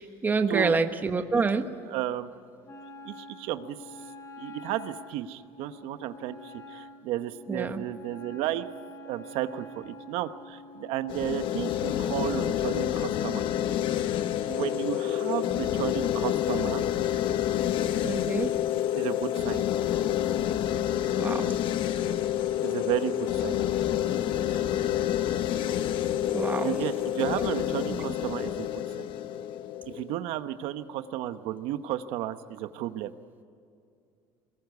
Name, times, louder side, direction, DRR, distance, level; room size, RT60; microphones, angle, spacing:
voice 1, 0.0-1.6 7.5-7.8 18.0-18.5 21.1-21.5 26.3-26.8 27.3-27.5 27.9-28.0, right 4 dB, 20° right, 7 dB, 1.2 m, -27 dB
voice 2, 1.8-2.3 3.0-4.0 4.4-8.7 9.0-13.4 14.5-16.8 18.9-19.7 22.6-23.6 26.6-28.7 29.0-29.1 29.9-33.1, right 12 dB, 75° right, 10 dB, 1.0 m, -33 dB
Wind instrument woodwind instrument, 2.6-12.2, left 1 dB, 30° left, 4.0 m, -47 dB
sound 1, 11.1-30.2, left 11 dB, 55° left, 0.9 m, -28 dB
22.0 x 20.0 x 9.5 m, 2.4 s
cardioid pair, 145°, 10 cm